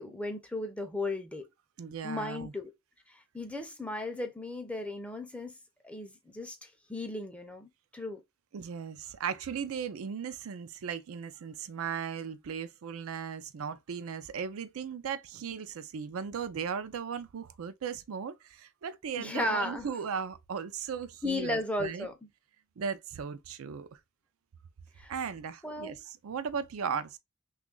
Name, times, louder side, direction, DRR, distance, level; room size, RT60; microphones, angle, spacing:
voice 1, 0.0-1.5 2.0-2.7 3.1-5.5 5.8-8.2 19.2-19.9 21.2-22.1 25.0-25.1 25.6-26.0, left 2 dB, 5° left, 0.4 m, -35 dB
voice 2, 1.8-2.5 8.5-22.1 22.8-23.9 25.1-26.0 26.2-27.2, right 6 dB, 80° right, 0.4 m, -37 dB
3.0 x 2.4 x 3.7 m
head